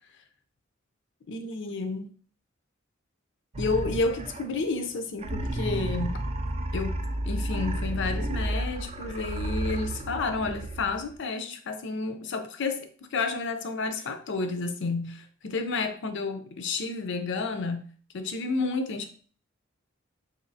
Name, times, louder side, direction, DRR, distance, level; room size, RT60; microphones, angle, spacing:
voice 1, 1.3-2.1 3.6-6.2 6.7-6.9 7.2-19.1, left 3 dB, 60° left, 0.5 m, -31 dB
sound 1, 3.5-4.7 5.2-11.2, right 1 dB, 30° right, 0.4 m, -32 dB
4.2 x 2.7 x 2.6 m
head